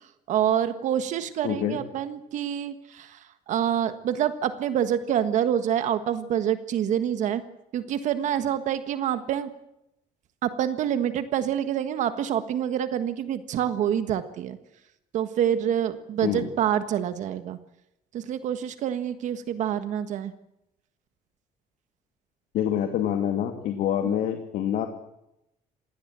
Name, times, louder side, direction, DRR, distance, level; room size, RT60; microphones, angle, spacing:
voice 1, 0.3-7.4 7.7-9.5 10.4-14.6 15.1-17.6 18.1-20.3 24.0-24.2, right 9 dB, 60° right, 10 dB, 1.6 m, -27 dB
voice 2, 1.4-1.8 16.2-16.5 22.5-24.9, left 10 dB, 75° left, 6 dB, 2.5 m, -26 dB
27.5 x 18.5 x 7.6 m, 0.84 s
cardioid pair, 175°, 14 cm